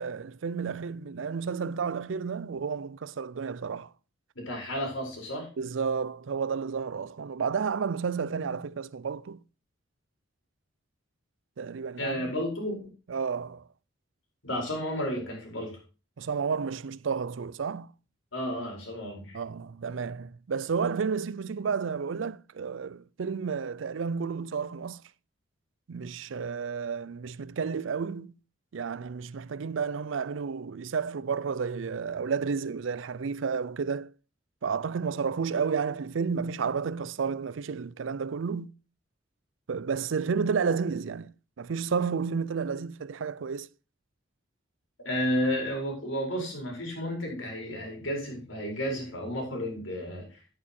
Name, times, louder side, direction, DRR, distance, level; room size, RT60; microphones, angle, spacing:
voice 1, 0.0-3.9 5.6-9.4 11.6-12.2 13.1-13.7 16.2-17.9 19.3-25.0 25.9-28.3 28.7-34.1 34.6-38.7 39.7-43.7, right 5 dB, 80° right, 0.5 m, -31 dB
voice 2, 4.3-5.5 12.0-12.8 14.4-15.8 18.3-19.4 45.0-50.6, equal, 90° left, 4.9 m, -32 dB
9.6 x 8.5 x 4.4 m
head